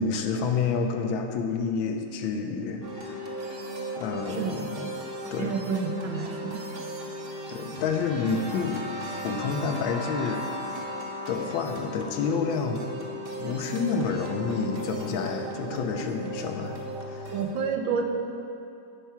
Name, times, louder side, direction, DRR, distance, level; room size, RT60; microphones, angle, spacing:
voice 1, 0.0-3.2 4.0-4.9 5.3-5.5 7.5-8.8 9.2-10.5 11.3-12.8 13.4-16.8 17.1-17.3, left 5 dB, 85° left, 5 dB, 1.5 m, -29 dB
sound 1, 2.8-17.4, equal, 45° right, 0.8 m, -36 dB
voice 2, 5.4-6.6 17.3-18.0, right 5 dB, 80° right, 3 dB, 1.5 m, -29 dB
9.1 x 4.7 x 5.6 m, 2.7 s
omnidirectional pair, 2.1 m